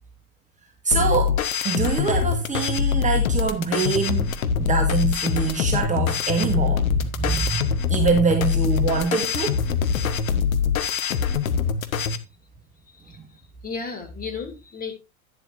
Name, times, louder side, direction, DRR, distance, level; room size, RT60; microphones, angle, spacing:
voice 1, 0.8-4.3 4.7-9.6, right 5 dB, 15° right, 1.5 m, -24 dB
sound 1, 0.9-12.2, left 7 dB, 65° left, 1.2 m, -23 dB
voice 2, 13.6-14.9, left 5 dB, 20° left, 2.6 m, -33 dB
11.0 x 9.9 x 2.5 m
figure-of-eight pair, 85°, 44 cm